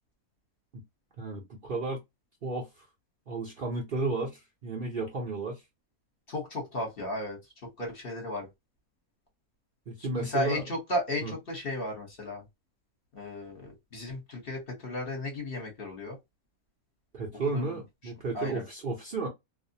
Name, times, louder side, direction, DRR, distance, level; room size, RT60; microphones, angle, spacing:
voice 1, 1.2-2.0 2.4-2.9 3.3-5.6 9.9-10.7 11.2-11.3 17.1-19.3, right 3 dB, 50° right, 0.7 m, -33 dB
voice 2, 6.3-8.5 10.1-12.4 13.1-16.2 17.5-17.7 18.3-18.6, left 1 dB, 45° left, 1.0 m, -34 dB
2.5 x 2.1 x 2.6 m
omnidirectional pair, 1.5 m